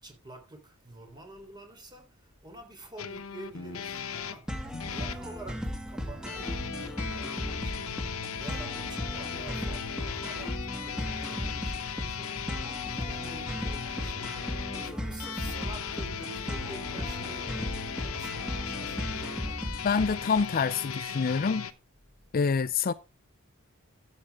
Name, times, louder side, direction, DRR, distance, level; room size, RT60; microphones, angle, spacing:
voice 1, 0.0-19.9, right 2 dB, 20° right, 3.5 m, -48 dB
sound 1, 3.0-5.2 6.3-21.7, left 7 dB, 75° left, 1.0 m, -37 dB
sound 2, 4.5-20.4, equal, 5° right, 2.1 m, -36 dB
voice 2, 19.8-21.7 22.3-22.9, left 5 dB, 45° left, 0.4 m, -26 dB
13.0 x 7.9 x 3.5 m
head